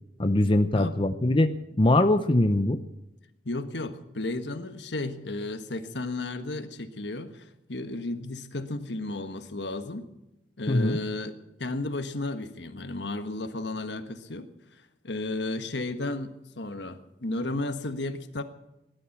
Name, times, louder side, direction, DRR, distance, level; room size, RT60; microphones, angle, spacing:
voice 1, 0.2-2.8 10.7-11.0, left 1 dB, 30° left, 8 dB, 0.7 m, -22 dB
voice 2, 3.4-10.1 10.6-14.5 15.0-18.4, left 2 dB, 70° left, 9 dB, 1.5 m, -33 dB
18.5 x 12.0 x 6.0 m, 0.91 s
head